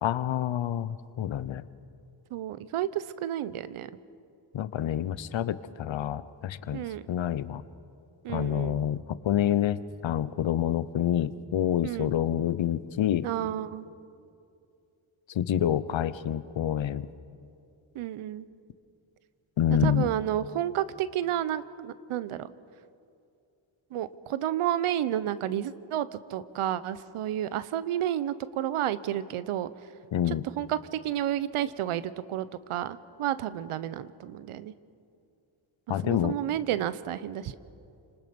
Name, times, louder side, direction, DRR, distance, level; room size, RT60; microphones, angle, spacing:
voice 1, 0.0-1.6 4.5-7.6 8.3-13.3 15.3-17.1 19.6-20.1 30.1-30.4 35.9-36.4, left 10 dB, 65° left, 16 dB, 0.9 m, -28 dB
voice 2, 2.3-3.9 6.7-7.0 8.2-8.8 11.8-12.1 13.2-13.8 17.9-18.5 19.8-22.5 23.9-29.7 30.3-34.7 36.0-37.6, right 11 dB, 85° right, 15 dB, 0.9 m, -31 dB
30.0 x 20.0 x 5.3 m, 2.5 s
cardioid pair, 70°, 49 cm